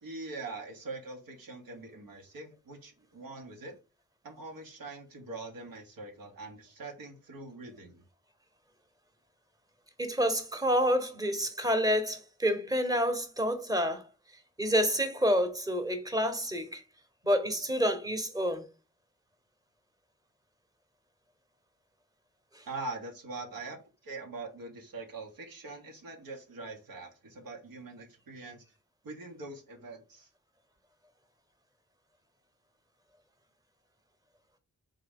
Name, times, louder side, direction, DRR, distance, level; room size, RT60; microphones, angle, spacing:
voice 1, 0.0-3.8 4.2-8.0 22.6-28.6 29.0-30.3, right 3 dB, 85° right, 1.0 m, -43 dB
voice 2, 10.0-14.0 14.6-16.8 17.2-18.6 22.5-22.6, equal, 10° right, 0.9 m, -28 dB
3.7 x 3.0 x 3.6 m
cardioid pair, 45°, 34 cm